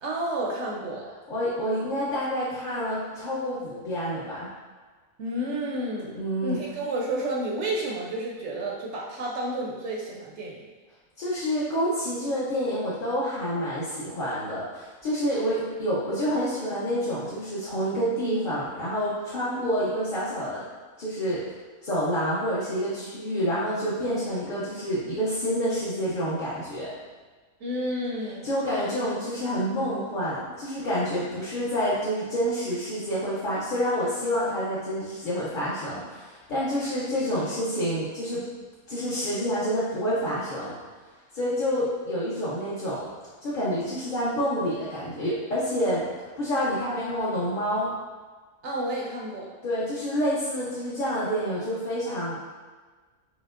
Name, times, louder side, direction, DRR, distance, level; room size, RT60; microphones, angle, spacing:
voice 1, 0.0-1.1 5.2-10.6 27.6-28.5 48.6-49.5, right 1 dB, 65° right, -3 dB, 0.8 m, -31 dB
voice 2, 1.3-4.5 6.2-6.6 11.2-20.6 21.0-21.4 21.8-26.9 28.4-38.4 38.9-40.7 41.3-43.0 43.4-46.1 46.4-47.9 49.6-52.4, equal, 50° left, -9 dB, 0.6 m, -28 dB
5.1 x 2.7 x 2.4 m, 1.4 s
omnidirectional pair, 1.5 m